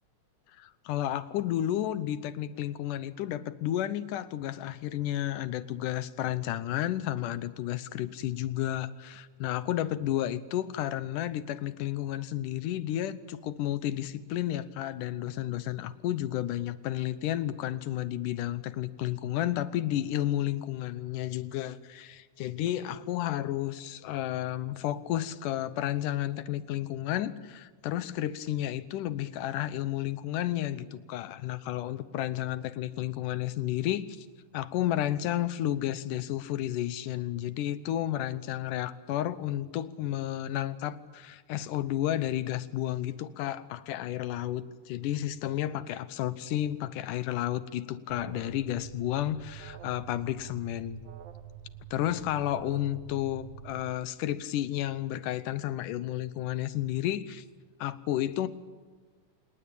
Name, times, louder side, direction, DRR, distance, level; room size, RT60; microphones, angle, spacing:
voice 1, 0.6-34.3 34.5-51.0 51.9-57.4 57.8-58.5, left 12 dB, 85° left, 14 dB, 2.5 m, -32 dB
Alarm, 48.1-53.9, right 10 dB, 60° right, 1.8 m, -47 dB
27.5 x 19.0 x 8.8 m, 1.4 s
omnidirectional pair, 3.6 m